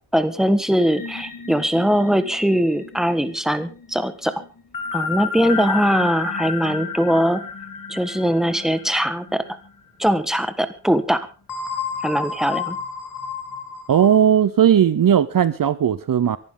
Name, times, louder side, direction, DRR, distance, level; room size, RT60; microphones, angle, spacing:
voice 1, 0.1-4.3 4.9-7.4 7.9-9.4 10.0-11.3 12.0-12.8, equal, ahead, 1.5 m, -21 dB
sound 1, 0.8-9.7 10.0-10.2 11.5-14.2, left 5 dB, 50° left, 3.1 m, -31 dB
voice 2, 13.9-16.4, right 9 dB, 55° right, 0.7 m, -17 dB
24.5 x 11.5 x 3.8 m
wide cardioid pair, 100°, 41 cm